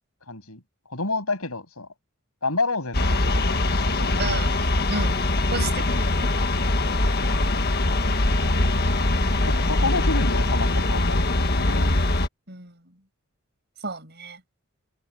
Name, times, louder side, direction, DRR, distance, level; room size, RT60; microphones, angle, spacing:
voice 1, 0.3-0.6 0.9-1.9 2.4-3.6 4.0-4.2 8.6-8.8 9.4-11.9, left 3 dB, 90° left, 7.4 m, -29 dB
sound 1, 2.9-12.3, left 2 dB, 50° left, 1.6 m, -22 dB
voice 2, 4.2-4.5 4.9-5.1 5.5-6.3 9.2-9.5 12.5-12.8 13.8-14.4, right 3 dB, 50° right, 6.8 m, -32 dB
head